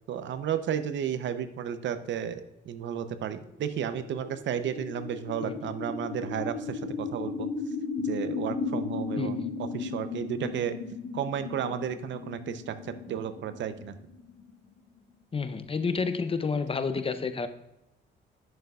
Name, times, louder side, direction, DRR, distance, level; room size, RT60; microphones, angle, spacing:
voice 1, 0.1-7.5 8.0-10.8 11.1-14.0, right 8 dB, 70° right, 11 dB, 0.7 m, -33 dB
sound 1, 3.4-15.0, left 4 dB, 85° left, 1.5 m, -36 dB
voice 2, 5.4-5.7 9.2-9.5 15.3-17.5, left 4 dB, 30° left, 10 dB, 0.6 m, -30 dB
10.5 x 6.6 x 2.4 m, 0.86 s
cardioid pair, 90°, 20 cm